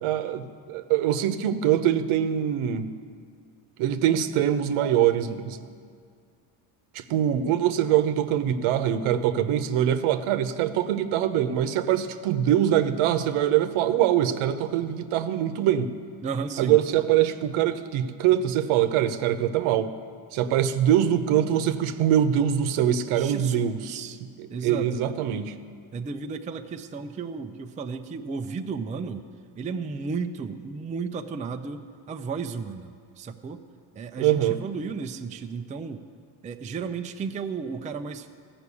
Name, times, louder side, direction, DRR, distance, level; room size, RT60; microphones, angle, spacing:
voice 1, 0.0-2.9 3.8-5.6 6.9-15.9 16.6-19.9 20.3-23.7 24.4-25.5 34.2-34.6, right 10 dB, 80° right, 10 dB, 0.9 m, -23 dB
voice 2, 16.2-16.8 23.1-24.2 24.5-25.2 25.9-29.2 29.6-33.6 33.9-36.0 36.4-38.3, right 5 dB, 15° right, 6 dB, 0.4 m, -34 dB
14.5 x 6.0 x 8.3 m, 2.1 s
cardioid pair, 120°, 49 cm